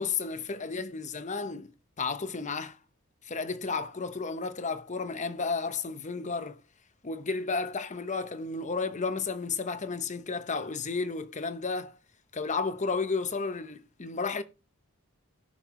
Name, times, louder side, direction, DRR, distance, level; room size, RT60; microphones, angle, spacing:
voice 1, 0.0-1.7 2.0-2.8 3.2-6.6 7.0-11.9 12.3-14.4, left 4 dB, 35° left, 0.9 m, -32 dB
18.0 x 6.6 x 3.1 m
head